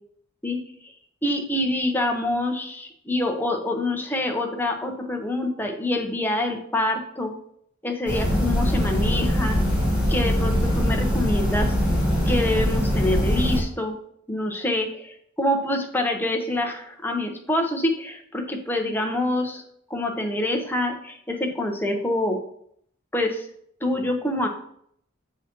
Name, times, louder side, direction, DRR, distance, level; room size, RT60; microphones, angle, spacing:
voice 1, 1.2-7.3 7.8-9.6 10.1-11.8 12.3-14.0 14.3-19.6 19.9-22.4 23.1-23.5 23.8-24.5, left 1 dB, 10° left, 2 dB, 0.7 m, -26 dB
sound 1, 8.1-13.6, equal, 5° right, 1.4 m, -22 dB
7.1 x 4.8 x 2.9 m, 0.67 s
head